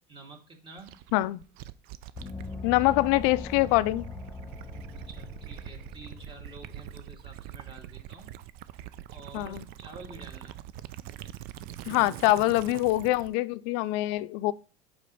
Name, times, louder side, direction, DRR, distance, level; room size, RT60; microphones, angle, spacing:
voice 1, 0.1-1.0 5.0-8.3 9.1-10.6, right 3 dB, 30° right, 2.3 m, -48 dB
Gurgling / Liquid, 0.8-13.4, right 12 dB, 60° right, 0.5 m, -44 dB
Gong, 2.1-7.4, left 4 dB, 15° left, 1.0 m, -42 dB
voice 2, 2.6-4.1 9.3-9.6 11.9-14.5, left 18 dB, 65° left, 0.5 m, -24 dB
5.1 x 5.1 x 5.5 m
hypercardioid pair, 90°, 18 cm